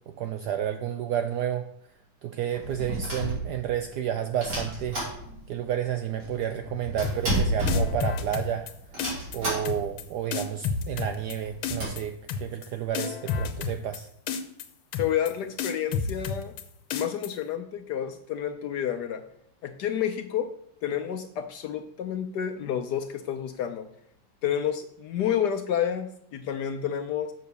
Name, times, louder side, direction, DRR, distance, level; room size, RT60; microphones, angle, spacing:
voice 1, 0.1-1.7 2.2-5.0 5.5-8.7 9.3-14.1, right 10 dB, 75° right, 8 dB, 0.9 m, -31 dB
sound 1, 2.5-3.9 4.4-5.7 5.9-6.0 6.2-8.5 8.9-10.0 10.3-10.4 10.6-10.8 11.3-11.9, right 1 dB, 55° right, 4.0 m, -30 dB
sound 2, 7.0-7.4 7.7-8.7 9.0-9.4 9.6-10.0 10.3-11.4 11.6-12.0 12.3-12.7 12.9-14.0 14.3-14.7 14.9-15.3 15.6-16.6 16.9-17.3, left 5 dB, 85° left, 1.7 m, -30 dB
voice 2, 15.0-16.5 16.9-19.2 19.6-20.5 20.8-23.9 24.4-27.3, left 9 dB, 70° left, 8 dB, 1.0 m, -29 dB
6.9 x 6.6 x 6.6 m, 0.72 s
omnidirectional pair, 2.2 m